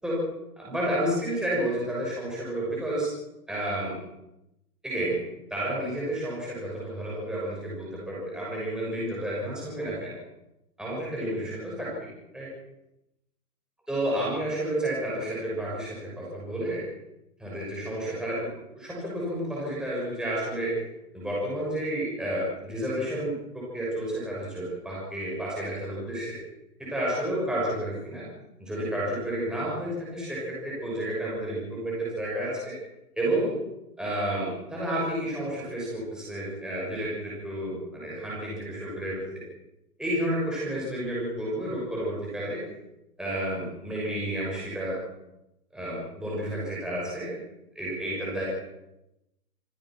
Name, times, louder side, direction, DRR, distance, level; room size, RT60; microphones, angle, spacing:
voice 1, 0.6-3.1 3.5-4.0 4.8-5.2 5.5-10.2 10.8-12.1 12.3-12.5 13.9-16.8 17.4-18.5 18.7-20.8 21.1-26.4 26.8-28.3 28.6-32.7 33.2-33.6 34.0-39.5 40.0-42.6 43.2-45.0 45.7-47.4 47.7-48.5, right 1 dB, ahead, -6 dB, 6.3 m, -31 dB
27.0 x 16.0 x 6.2 m, 0.88 s
hypercardioid pair, 155°, 49 cm